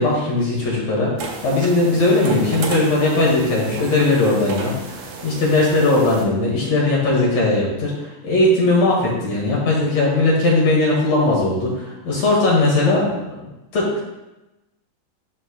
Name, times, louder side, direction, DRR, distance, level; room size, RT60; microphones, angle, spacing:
voice 1, 0.0-14.1, left 2 dB, 60° left, -4 dB, 2.7 m, -19 dB
sound 1, 1.2-6.2, right 4 dB, 75° right, 1.5 m, -33 dB
11.5 x 4.5 x 2.2 m, 0.98 s
omnidirectional pair, 3.9 m